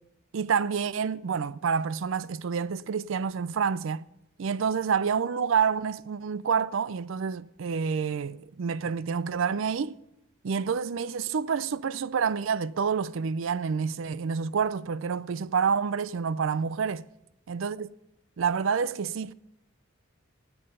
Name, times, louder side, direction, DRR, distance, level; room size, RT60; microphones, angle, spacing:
voice 1, 0.3-4.0 4.4-10.0 10.4-17.1 17.5-17.9 18.4-19.3, right 6 dB, 65° right, 0.4 m, -28 dB
18.5 x 7.9 x 5.4 m
head